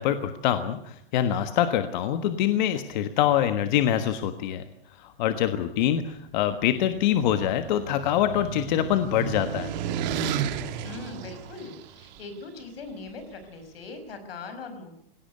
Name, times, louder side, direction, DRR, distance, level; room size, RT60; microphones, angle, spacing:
voice 1, 0.0-4.6 5.0-9.7, left 10 dB, 50° left, 9 dB, 1.5 m, -25 dB
sound 1, 6.9-12.2, right 8 dB, 50° right, 2.3 m, -33 dB
voice 2, 10.8-15.0, left 3 dB, 85° left, 9 dB, 5.9 m, -40 dB
19.0 x 17.5 x 9.5 m, 0.71 s
supercardioid pair, 150°, 29 cm